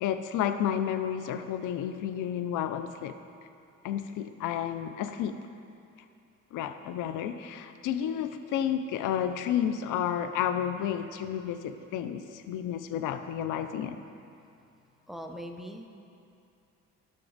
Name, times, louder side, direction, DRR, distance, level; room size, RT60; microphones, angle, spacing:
voice 1, 0.0-3.2 3.8-5.4 6.5-14.0, left 9 dB, 85° left, 10 dB, 0.5 m, -31 dB
voice 2, 15.1-15.9, equal, ahead, 4 dB, 0.6 m, -40 dB
12.5 x 5.9 x 3.9 m, 2.6 s
cardioid pair, 90°, 30 cm